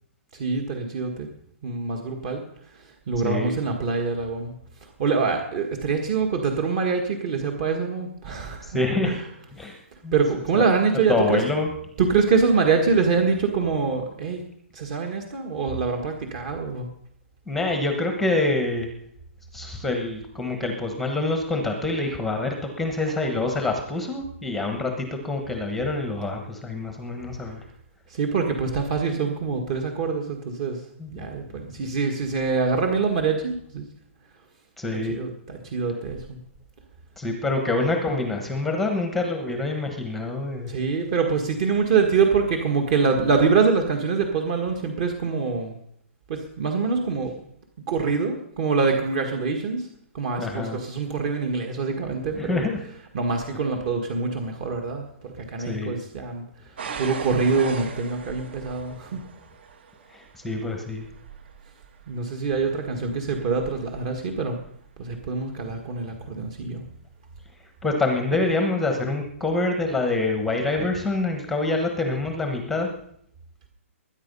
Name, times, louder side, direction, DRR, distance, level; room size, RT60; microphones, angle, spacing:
voice 1, 0.3-1.3 1.6-2.4 3.1-4.5 4.8-8.8 9.0-9.2 10.1-11.4 12.0-14.4 14.7-16.9 28.1-30.8 31.1-33.8 35.1-36.4 40.7-45.8 46.3-47.3 47.9-49.9 50.1-52.6 53.1-59.2 62.1-64.6 65.0-66.8, right 5 dB, 30° right, 3 dB, 1.7 m, -25 dB
voice 2, 3.2-3.5 8.6-9.2 9.6-9.8 10.0-10.1 10.5-10.6 11.1-11.7 17.5-18.9 19.5-27.6 31.0-31.1 34.8-35.2 37.2-40.7 50.4-50.8 52.3-52.8 55.7-55.9 60.1-61.1 67.8-72.9, left 2 dB, ahead, 4 dB, 1.2 m, -26 dB
sound 1, 56.8-65.6 66.3-66.7 67.3-67.4, right 6 dB, 50° right, 1.9 m, -41 dB
21.5 x 9.8 x 5.5 m, 0.70 s
hypercardioid pair, 175°, 8 cm